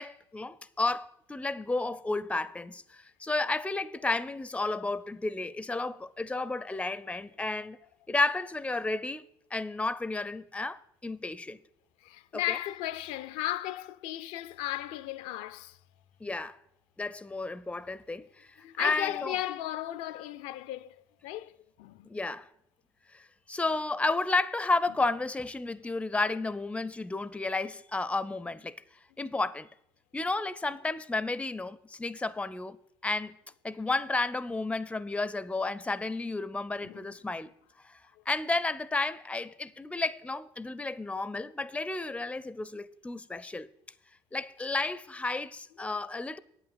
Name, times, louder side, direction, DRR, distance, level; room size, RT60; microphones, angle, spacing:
voice 1, 0.0-7.8 8.1-9.2 9.5-11.6 12.3-12.6 16.2-16.6 17.0-19.4 22.0-22.5 23.1-28.8 29.2-29.7 30.1-32.8 33.0-33.4 33.6-37.5 37.8-38.0 38.3-43.7 44.3-46.4, left 3 dB, 10° left, 0.5 m, -32 dB
voice 2, 12.0-15.8 18.6-21.5 21.8-22.1 36.8-37.0, left 14 dB, 65° left, 0.4 m, -35 dB
8.9 x 5.7 x 8.0 m
hypercardioid pair, 55°, 13 cm